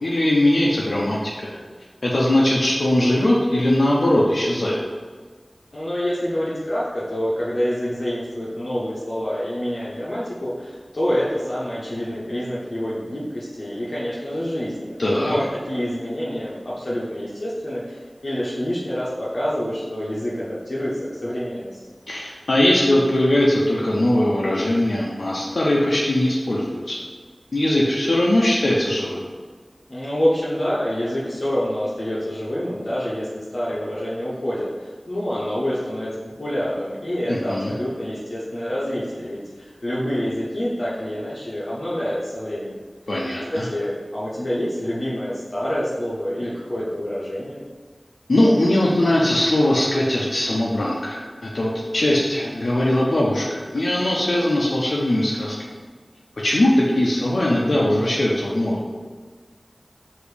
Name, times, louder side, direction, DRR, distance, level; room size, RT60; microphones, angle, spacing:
voice 1, 0.0-1.5 2.0-4.8 15.0-15.4 22.1-27.0 27.5-29.2 37.3-37.7 43.1-43.7 48.3-55.6 56.4-58.9, left 1 dB, 90° left, -5 dB, 0.5 m, -20 dB
voice 2, 5.7-21.8 29.9-36.1 36.4-42.8 43.5-47.7, equal, 60° left, -8 dB, 0.8 m, -27 dB
5.0 x 2.6 x 3.2 m, 1.4 s
wide cardioid pair, 50°, 0 cm